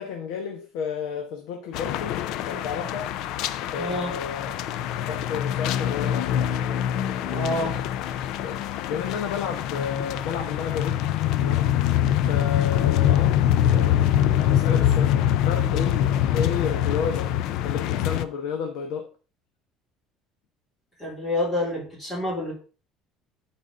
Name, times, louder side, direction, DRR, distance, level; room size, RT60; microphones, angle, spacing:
voice 1, 0.0-2.2 2.4-3.1 3.7-4.6 5.0-6.5 7.6-7.8 8.2-11.0 11.4-11.7 12.2-13.3 13.6-14.0 14.4-17.3 17.6-19.1, left 6 dB, 80° left, 3 dB, 1.1 m, -32 dB
sound 1, 1.7-18.2, left 11 dB, 60° left, 0.5 m, -24 dB
voice 2, 3.7-4.1 7.2-7.8 21.0-22.5, left 1 dB, 15° left, -3 dB, 3.3 m, -28 dB
12.5 x 4.1 x 3.8 m, 0.36 s
cardioid pair, 165°, 0 cm